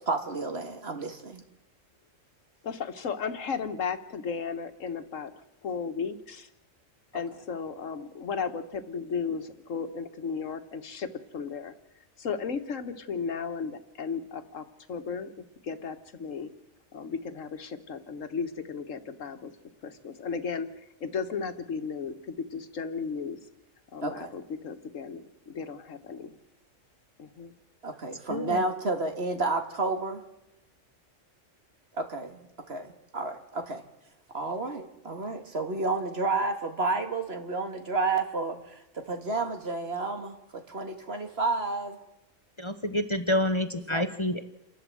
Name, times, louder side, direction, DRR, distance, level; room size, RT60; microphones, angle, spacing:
voice 1, 0.0-1.4 24.0-24.3 27.8-30.2 32.0-33.8 34.3-42.0 43.9-44.0, right 3 dB, 55° right, 5 dB, 2.1 m, -31 dB
voice 2, 2.6-6.5 7.1-11.7 12.2-15.3 15.6-16.5 16.9-19.5 19.8-23.4 23.9-26.4 27.2-27.5, left 5 dB, 85° left, 9 dB, 1.6 m, -35 dB
voice 3, 28.3-28.6 42.6-44.4, left 1 dB, 25° left, 8 dB, 0.9 m, -28 dB
29.0 x 11.5 x 7.7 m, 0.92 s
omnidirectional pair, 1.3 m